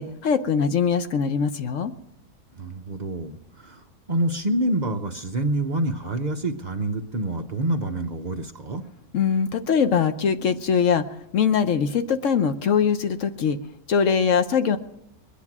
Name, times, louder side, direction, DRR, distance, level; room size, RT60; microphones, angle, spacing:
voice 1, 0.0-1.9 9.1-11.0 11.3-13.6 13.9-14.8, left 6 dB, 60° left, 9 dB, 0.9 m, -22 dB
voice 2, 2.5-8.8, right 1 dB, 60° right, 4 dB, 0.4 m, -27 dB
21.0 x 10.5 x 6.0 m, 0.83 s
omnidirectional pair, 1.9 m